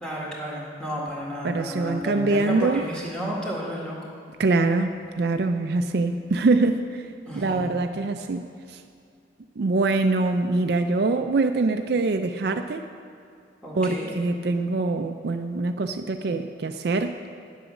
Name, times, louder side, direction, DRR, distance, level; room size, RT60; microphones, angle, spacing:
voice 1, 0.0-4.0 7.3-7.7 13.6-14.1, equal, 5° left, -4 dB, 1.8 m, -32 dB
voice 2, 1.4-2.8 4.4-4.9 5.2-7.1 7.3-8.8 9.6-12.8 13.7-17.1, right 3 dB, 55° right, 7 dB, 0.4 m, -24 dB
10.0 x 7.8 x 6.3 m, 2.3 s
head